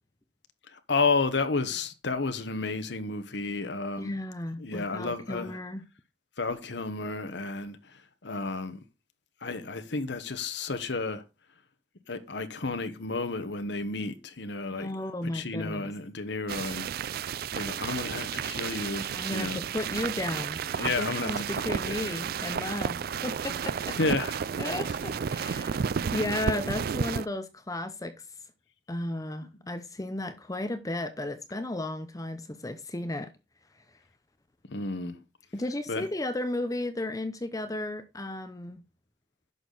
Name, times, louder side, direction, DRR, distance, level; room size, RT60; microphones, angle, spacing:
voice 1, 0.7-4.2 4.6-5.6 6.4-8.8 9.4-11.2 12.1-14.9 15.2-16.9 17.5-19.7 20.8-22.2 23.9-24.4 34.7-35.2 35.9-36.1, left 3 dB, 70° left, 1.1 m, -32 dB
voice 2, 4.0-5.8 14.7-15.9 19.1-24.0 24.6-25.8 26.1-28.1 28.9-33.3 35.5-38.8, left 1 dB, 20° left, 0.7 m, -34 dB
sound 1, 16.5-27.3, right 7 dB, 55° right, 0.4 m, -32 dB
Bowed string instrument, 22.4-27.5, right 1 dB, 70° right, 2.3 m, -47 dB
11.0 x 6.6 x 4.0 m
head